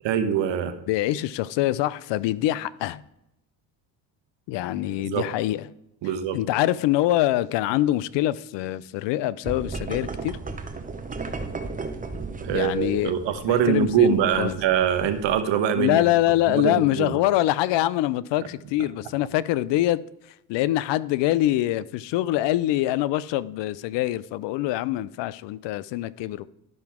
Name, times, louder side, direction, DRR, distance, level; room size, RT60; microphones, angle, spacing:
voice 1, 0.0-0.7 5.0-5.3 6.0-6.4 12.4-16.0 16.5-17.1, right 8 dB, 65° right, 1.2 m, -23 dB
voice 2, 0.9-3.0 4.5-5.6 6.3-10.4 12.5-13.1 13.5-14.5 15.8-20.0 20.5-26.5, left 15 dB, 65° left, 0.5 m, -24 dB
sound 1, 9.4-15.3, right 3 dB, 15° right, 0.9 m, -35 dB
12.0 x 5.8 x 3.6 m
supercardioid pair, 75°, 48 cm